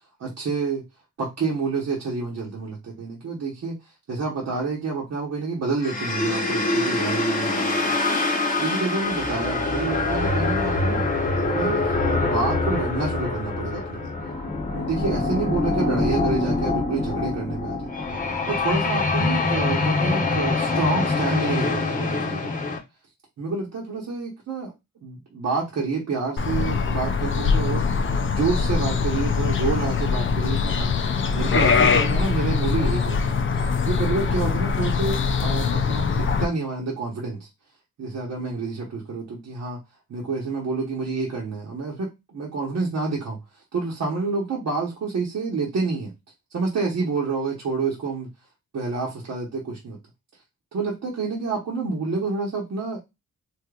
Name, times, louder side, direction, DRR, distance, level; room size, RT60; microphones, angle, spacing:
voice 1, 0.2-0.8 1.2-3.8 4.1-7.9 8.6-14.1 14.7-17.9 18.5-22.5 23.4-24.7 25.0-27.9 28.2-30.9 31.3-37.5 38.0-39.8 40.1-43.4 43.7-46.1 46.5-48.3 48.7-50.0 50.7-53.0, right 4 dB, 65° right, -4 dB, 1.0 m, -28 dB
sound 1, 5.8-22.8, left 3 dB, 25° left, 0.9 m, -24 dB
sound 2, 26.4-36.5, left 5 dB, 45° left, 0.5 m, -22 dB
3.3 x 2.9 x 2.4 m, 0.22 s
cardioid pair, 95°, 30 cm